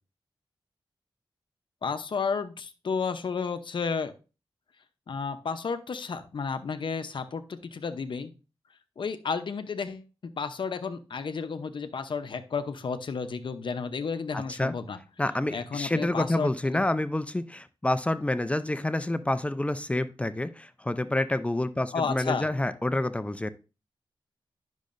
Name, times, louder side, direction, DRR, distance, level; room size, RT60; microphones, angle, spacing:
voice 1, 1.8-4.1 5.1-8.3 9.0-15.0 15.5-16.8 21.9-22.5, left 5 dB, 60° left, 10 dB, 0.8 m, -32 dB
voice 2, 14.3-14.7 15.2-23.5, left 1 dB, 15° left, 12 dB, 0.5 m, -28 dB
10.5 x 6.3 x 2.6 m, 0.33 s
wide cardioid pair, 100°, 9 cm